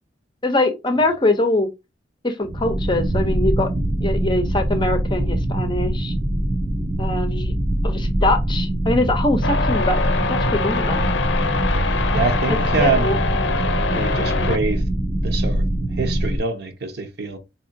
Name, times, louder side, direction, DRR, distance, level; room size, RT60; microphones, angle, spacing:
voice 1, 0.4-1.7 2.2-3.7 4.0-6.1 7.0-7.5 7.8-11.0 12.5-13.2, left 2 dB, 25° left, 0.6 m, -23 dB
sound 1, 2.4-16.4, right 1 dB, 20° right, 0.5 m, -23 dB
sound 2, 9.4-14.6, left 4 dB, 70° left, 0.6 m, -24 dB
voice 2, 12.1-13.2 13.8-14.8 15.2-15.6 16.0-17.4, right 3 dB, 60° right, 0.8 m, -25 dB
4.6 x 2.8 x 2.6 m
head